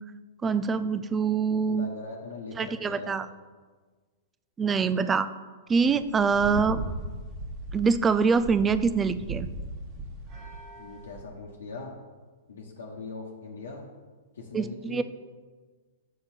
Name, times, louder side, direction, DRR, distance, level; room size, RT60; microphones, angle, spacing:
voice 1, 0.4-1.9 2.6-3.3 4.6-5.3 5.7-6.8 7.7-9.5 14.5-15.0, right 5 dB, 20° right, 13 dB, 0.4 m, -24 dB
voice 2, 1.6-3.2 5.8-6.0 10.8-12.0 12.5-13.9 14.3-15.0, left 3 dB, 75° left, -3 dB, 1.1 m, -41 dB
sound 1, 5.8-11.2, right 2 dB, 40° right, 1.3 m, -38 dB
7.0 x 6.6 x 4.4 m, 1.4 s
hypercardioid pair, 115°, 0 cm